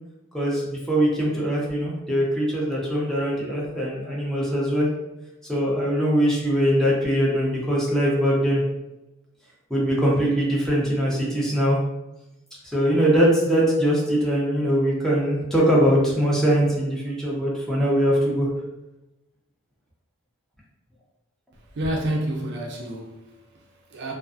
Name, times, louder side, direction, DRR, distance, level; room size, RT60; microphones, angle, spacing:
voice 1, 0.3-4.9 5.5-8.6 9.7-11.8 12.6-18.5, equal, ahead, -5 dB, 0.5 m, -22 dB
voice 2, 21.7-24.1, right 1 dB, 55° right, 0 dB, 0.4 m, -29 dB
2.3 x 2.3 x 2.4 m, 0.96 s
head